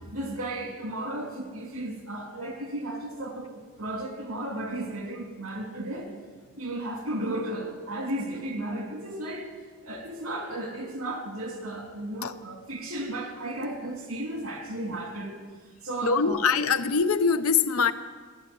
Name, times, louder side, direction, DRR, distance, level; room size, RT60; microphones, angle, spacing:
voice 1, 0.1-6.1 6.6-9.5 9.8-15.3 15.8-16.4, right 1 dB, 85° right, 2 dB, 2.9 m, -34 dB
voice 2, 16.0-17.9, left 5 dB, 90° left, 11 dB, 0.8 m, -23 dB
15.0 x 8.3 x 9.3 m, 1.5 s
head